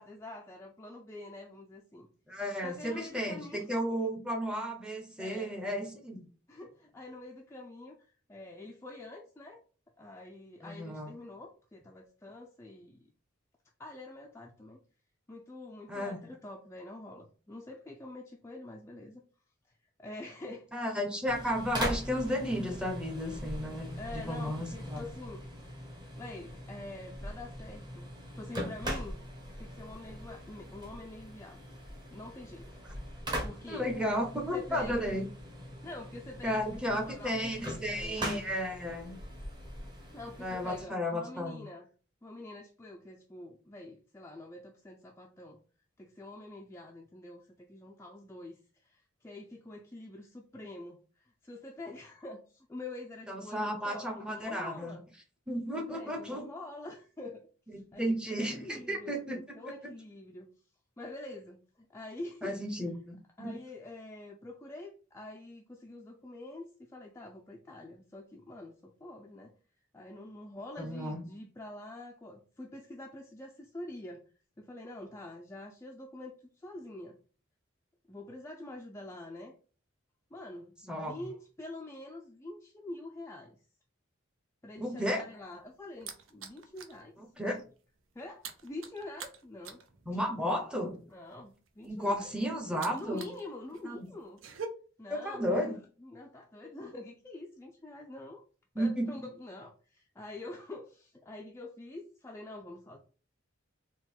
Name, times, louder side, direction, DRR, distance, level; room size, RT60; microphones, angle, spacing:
voice 1, 0.0-2.1 2.6-3.7 5.2-5.6 6.5-9.6 10.0-13.0 13.8-14.8 15.3-19.2 19.7-21.0 24.0-25.7 26.2-29.2 29.6-31.6 32.1-33.9 34.5-35.2 35.8-38.2 40.1-41.9 42.2-45.6 46.0-55.1 55.7-60.5 61.0-62.6 63.1-69.5 69.9-74.2 74.6-77.2 78.1-79.5 80.3-83.6 84.6-87.2 88.1-89.8 91.1-92.3 92.9-94.4 95.0-98.4 98.8-103.0, left 2 dB, 15° left, 1 dB, 0.3 m, -46 dB
voice 2, 2.3-6.2 10.6-11.1 15.9-16.2 20.7-25.0 33.7-35.2 36.4-39.2 40.4-41.6 53.3-54.9 55.5-56.4 57.7-59.4 62.4-63.6 70.8-71.2 80.9-81.2 84.8-85.2 87.4-87.6 90.1-91.0 91.8-93.3 93.8-94.0 95.1-95.8 98.7-99.1, equal, 5° right, 3 dB, 0.7 m, -33 dB
sound 1, 21.3-40.8, equal, 20° right, 1.1 m, -41 dB
sound 2, 85.2-87.0 87.4-87.6 87.8-93.4 93.7-94.7, right 7 dB, 80° right, 0.6 m, -46 dB
3.7 x 2.3 x 4.3 m, 0.38 s
head